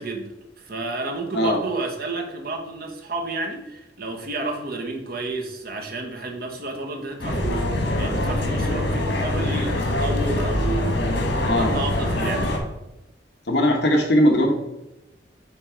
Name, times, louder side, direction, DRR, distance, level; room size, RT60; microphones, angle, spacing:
voice 1, 0.0-12.6, right 3 dB, 55° right, 2 dB, 1.2 m, -31 dB
sound 1, 7.2-12.6, left 1 dB, 90° left, 1.7 m, -24 dB
voice 2, 11.4-11.8 13.5-14.5, equal, 65° left, 2 dB, 1.2 m, -19 dB
8.7 x 3.6 x 4.5 m, 0.92 s
head